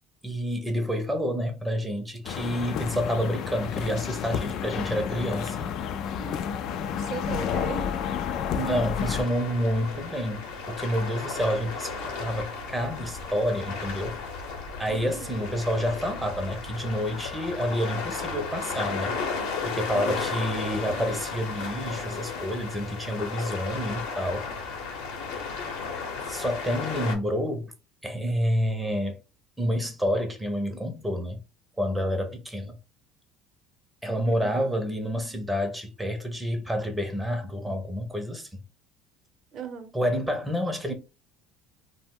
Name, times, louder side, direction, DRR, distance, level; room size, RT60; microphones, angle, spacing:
voice 1, 0.2-5.7 8.5-14.2 14.8-19.2 19.6-24.5 26.3-27.7 28.0-29.2 29.6-31.4 31.8-32.8 34.0-38.6 39.9-40.9, equal, 10° right, 0.6 m, -29 dB
sound 1, 2.2-9.2, left 8 dB, 60° left, 0.3 m, -30 dB
voice 2, 6.2-8.0 14.9-15.5 19.9-20.3 24.5-24.6 34.2-34.7 39.5-39.9, right 6 dB, 45° right, 0.7 m, -39 dB
sound 2, 8.9-27.2, left 4 dB, 80° left, 0.8 m, -34 dB
2.1 x 2.1 x 3.5 m
supercardioid pair, 115°, 0 cm